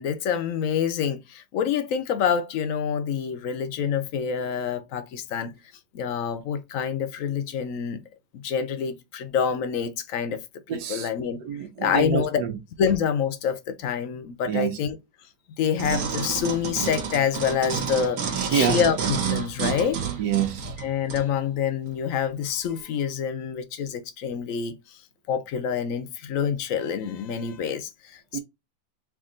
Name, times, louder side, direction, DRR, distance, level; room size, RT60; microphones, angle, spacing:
voice 1, 0.0-5.5 5.9-8.0 8.3-10.4 10.7-11.4 11.8-12.4 12.8-15.0 15.6-18.2 18.5-20.1 20.8-24.8 25.3-28.4, left 7 dB, 65° left, 0.9 m, -27 dB
voice 2, 10.7-11.1 11.4-12.6 14.5-14.8 18.3-18.8 20.2-20.7 28.3-28.4, right 9 dB, 85° right, 1.3 m, -27 dB
sound 1, 15.8-21.3 21.9-22.0, right 7 dB, 60° right, 1.3 m, -29 dB
3.5 x 2.6 x 3.7 m
omnidirectional pair, 1.8 m